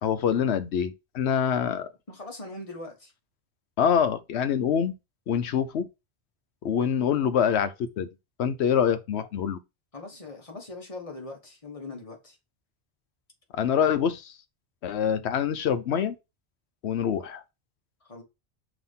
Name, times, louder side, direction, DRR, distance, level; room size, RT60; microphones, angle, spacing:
voice 1, 0.0-1.9 3.8-4.9 5.3-5.9 6.6-8.1 8.4-9.6 13.5-14.3 14.8-16.2 16.8-17.4, left 8 dB, 80° left, 1.0 m, -25 dB
voice 2, 2.1-3.1 9.9-12.4 18.0-18.2, left 2 dB, 30° left, 1.5 m, -41 dB
5.9 x 3.0 x 5.5 m
omnidirectional pair, 1.1 m